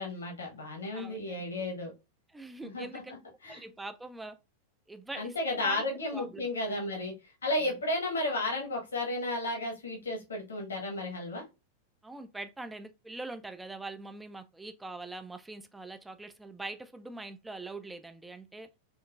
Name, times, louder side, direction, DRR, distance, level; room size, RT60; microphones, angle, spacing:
voice 1, 0.0-1.9 2.6-3.0 3.4-3.6 5.2-7.1 7.4-11.4, left 2 dB, 70° left, 1.0 m, -33 dB
voice 2, 0.9-1.4 2.3-3.1 3.5-4.4 4.9-5.8 6.1-6.5 12.0-18.7, right 2 dB, 10° right, 0.3 m, -43 dB
3.7 x 2.7 x 2.3 m
figure-of-eight pair, 90°, 0 cm